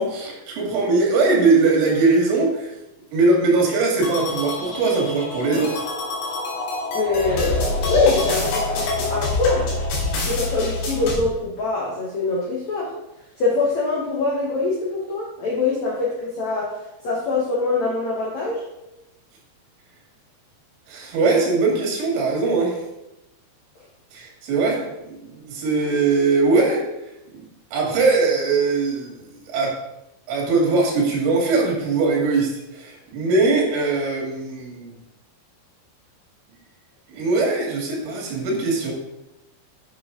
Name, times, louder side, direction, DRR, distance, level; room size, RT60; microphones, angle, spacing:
voice 1, 0.0-2.7 3.1-5.8 20.9-22.8 24.1-26.8 27.3-27.5 27.7-29.1 29.5-29.7 30.3-34.9 37.1-38.9, right 3 dB, 85° right, -1 dB, 4.6 m, -21 dB
sound 1, 4.0-11.2, left 2 dB, 65° left, 4.1 m, -26 dB
voice 2, 6.9-9.7 10.2-12.9 13.4-16.8 17.0-18.6, left 3 dB, 85° left, -4 dB, 1.6 m, -23 dB
9.1 x 6.3 x 3.8 m, 0.92 s
omnidirectional pair, 5.5 m